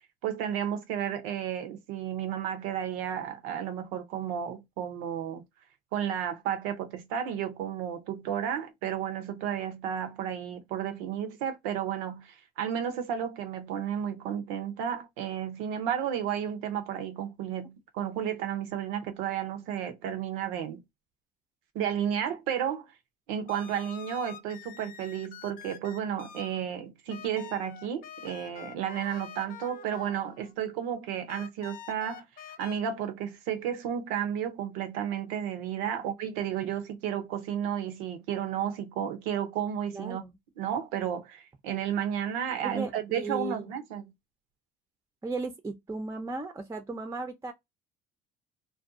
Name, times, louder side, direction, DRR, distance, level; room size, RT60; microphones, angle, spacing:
voice 1, 0.2-5.4 5.9-20.8 21.7-22.9 23.3-32.3 32.6-40.2 40.6-44.1, right 9 dB, 90° right, 0.7 m, -32 dB
sound 1, 21.8-22.1 23.5-26.7 27.1-30.5 31.3-32.8, left 9 dB, 55° left, 0.5 m, -47 dB
voice 2, 39.9-40.3 42.6-43.7 45.2-47.5, right 3 dB, 15° right, 0.5 m, -36 dB
2.5 x 2.3 x 2.5 m
supercardioid pair, 90°, 18 cm